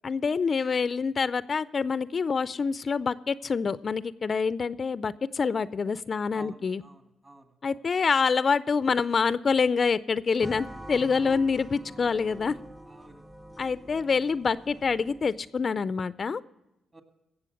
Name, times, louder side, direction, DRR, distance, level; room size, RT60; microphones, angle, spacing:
voice 1, 0.0-6.8 7.6-12.6 13.6-16.4, left 5 dB, 45° left, 17 dB, 0.4 m, -26 dB
voice 2, 6.3-7.8 11.2-11.4 12.9-13.2 16.9-17.0, right 2 dB, 30° right, 8 dB, 1.9 m, -51 dB
sound 1, 10.4-15.5, right 1 dB, 10° right, 0.6 m, -45 dB
17.0 x 7.0 x 6.4 m, 0.92 s
cardioid pair, 70°, 0 cm